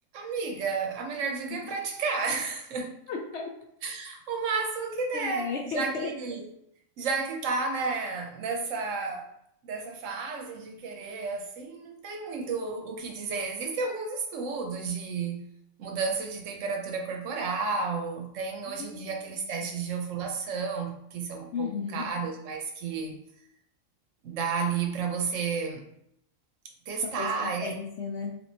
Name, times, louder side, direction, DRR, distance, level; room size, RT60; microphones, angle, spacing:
voice 1, 0.1-3.0 3.8-6.4 7.0-9.3 9.6-15.4 15.8-23.2 24.2-25.8 26.9-27.8, right 4 dB, 70° right, 0.9 m, -32 dB
voice 2, 3.1-3.5 5.1-6.1 18.7-19.1 19.6-19.7 21.5-22.1 27.2-27.3 27.6-28.4, left 4 dB, 65° left, 0.7 m, -34 dB
3.5 x 2.5 x 2.7 m
omnidirectional pair, 1.4 m